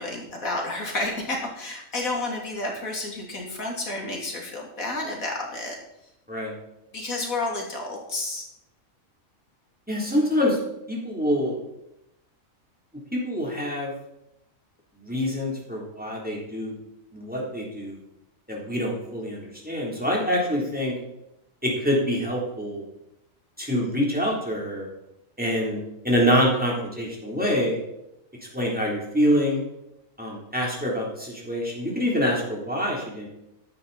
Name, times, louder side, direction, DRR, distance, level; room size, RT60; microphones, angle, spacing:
voice 1, 0.0-5.8 6.9-8.5, left 2 dB, 85° left, -1 dB, 3.3 m, -30 dB
voice 2, 9.9-10.6 10.9-11.6 13.1-13.9 15.0-16.7 17.1-18.0 18.5-20.9 21.6-22.8 23.6-24.9 25.4-27.8 28.5-29.6 30.2-33.3, equal, 5° right, -4 dB, 3.6 m, -25 dB
14.0 x 11.0 x 4.2 m, 0.86 s
omnidirectional pair, 1.4 m